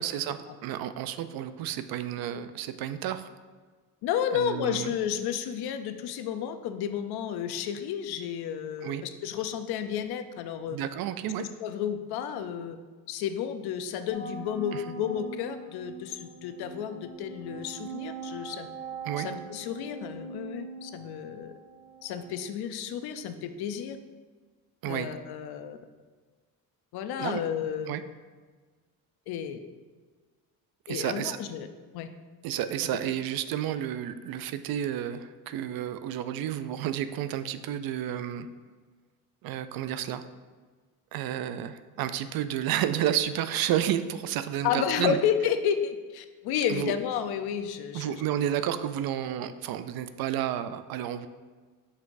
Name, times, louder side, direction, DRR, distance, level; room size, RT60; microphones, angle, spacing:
voice 1, 0.0-3.3 4.3-4.9 8.8-9.0 10.7-11.4 14.7-14.8 19.0-19.3 24.8-25.1 27.2-27.4 27.8-28.0 30.9-31.4 32.4-38.5 39.4-40.2 41.1-45.2 46.7-46.9 47.9-51.3, right 11 dB, 70° right, 11 dB, 0.5 m, -31 dB
voice 2, 4.0-10.8 11.4-12.8 13.1-18.7 19.2-21.5 22.0-24.0 24.8-25.8 26.9-28.0 29.3-29.6 30.9-31.7 31.9-32.1 44.6-48.2, left 8 dB, 80° left, 9 dB, 0.6 m, -31 dB
sound 1, 14.1-22.3, right 4 dB, 5° left, 1.0 m, -42 dB
7.8 x 5.5 x 2.6 m, 1.4 s
cardioid pair, 155°, 37 cm